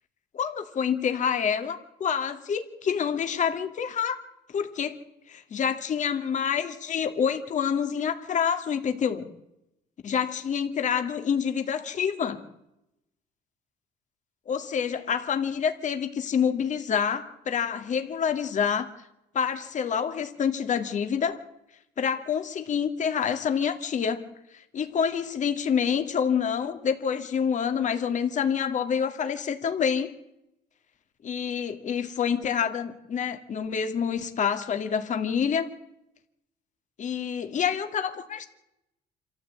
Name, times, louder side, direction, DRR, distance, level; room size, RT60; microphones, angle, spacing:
voice 1, 0.3-4.2 4.5-5.0 5.3-9.3 10.0-12.4 14.5-18.9 19.3-21.4 22.0-24.3 24.7-30.1 31.2-35.7 37.0-38.4, left 7 dB, 45° left, 7 dB, 2.4 m, -27 dB
27.0 x 14.0 x 8.7 m, 0.86 s
cardioid pair, 110°, 17 cm